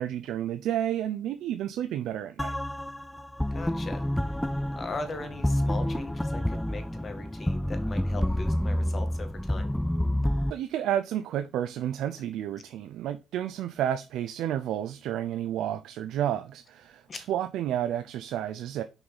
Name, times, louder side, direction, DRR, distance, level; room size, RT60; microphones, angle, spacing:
voice 1, 0.0-2.6 10.5-18.8, right 11 dB, 85° right, 0.4 m, -31 dB
sound 1, 2.4-10.5, left 1 dB, 5° left, 0.3 m, -29 dB
voice 2, 3.5-4.1 4.8-9.8 17.1-17.2, left 3 dB, 40° left, 1.7 m, -39 dB
5.8 x 5.4 x 4.0 m
cardioid pair, 90°, 0 cm